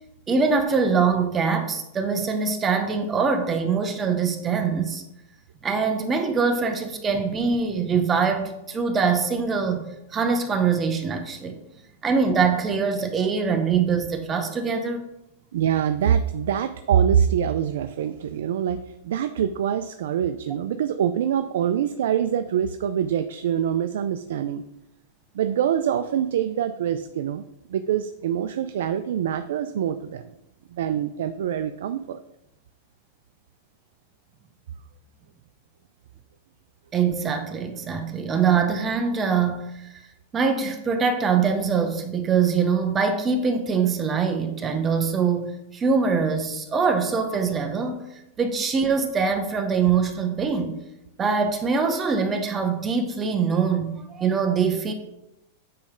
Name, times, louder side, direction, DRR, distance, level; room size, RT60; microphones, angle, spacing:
voice 1, 0.3-5.0 5.6-11.6 12.0-15.1 36.9-39.9 40.3-48.1 48.4-50.8 51.2-54.9, right 5 dB, 20° right, 6 dB, 0.8 m, -23 dB
voice 2, 15.5-18.8 19.0-24.6 25.3-27.4 27.7-30.3 30.7-32.2, right 9 dB, 75° right, 10 dB, 0.4 m, -24 dB
8.6 x 3.2 x 5.1 m, 0.86 s
hypercardioid pair, 135°, 0 cm